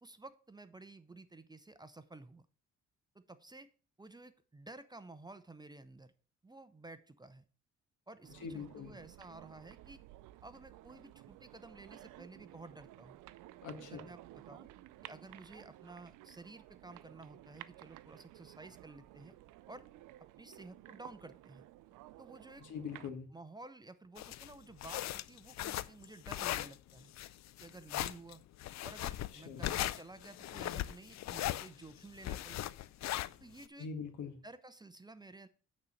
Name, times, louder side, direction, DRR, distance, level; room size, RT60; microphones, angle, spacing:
voice 1, 0.0-2.4 3.1-3.7 4.0-6.1 6.4-7.4 8.1-10.0 10.4-13.2 13.8-14.7 15.0-19.4 19.7-19.8 20.2-21.7 22.2-22.6 23.3-27.1 27.6-28.4 28.8-32.6 33.4-33.9 34.4-35.5, right 2 dB, 15° right, 12 dB, 0.6 m, -53 dB
sound 1, 8.2-23.1, right 15 dB, 90° right, 0.5 m, -55 dB
voice 2, 8.4-8.9 13.6-14.0 22.6-23.3 29.3-29.7 33.8-34.4, left 5 dB, 80° left, 7 dB, 1.6 m, -43 dB
sound 2, 24.2-33.6, left 14 dB, 65° left, 0.5 m, -38 dB
8.7 x 4.1 x 6.4 m, 0.39 s
cardioid pair, 90°, 30 cm